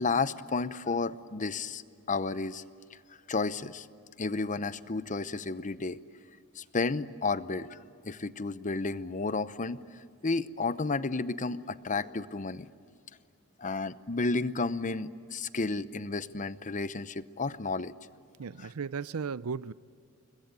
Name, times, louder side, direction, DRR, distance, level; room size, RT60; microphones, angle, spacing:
voice 1, 0.0-1.8 2.1-2.6 3.3-3.9 4.2-6.0 6.6-7.8 8.0-9.8 10.2-12.7 13.6-17.9 18.6-18.7, left 3 dB, 35° left, 0.8 m, -32 dB
voice 2, 18.4-19.7, right 5 dB, 75° right, 0.6 m, -35 dB
29.5 x 22.0 x 9.1 m
head